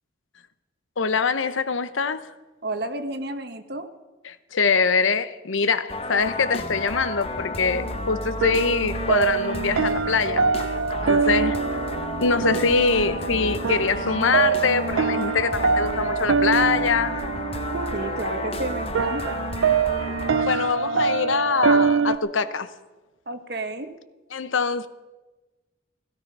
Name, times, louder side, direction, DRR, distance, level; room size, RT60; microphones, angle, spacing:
voice 1, 1.0-2.3 4.2-10.7 11.1-11.6 12.2-17.1 20.4-22.7 24.3-24.9, left 5 dB, 85° left, 0.8 m, -23 dB
voice 2, 2.6-3.9 11.0-11.6 17.9-19.8 23.3-23.9, right 2 dB, 55° right, 1.2 m, -32 dB
sound 1, 5.9-20.4, left 2 dB, 30° left, 0.9 m, -32 dB
sound 2, 7.7-22.2, right 5 dB, 85° right, 0.5 m, -25 dB
16.5 x 15.5 x 5.5 m
head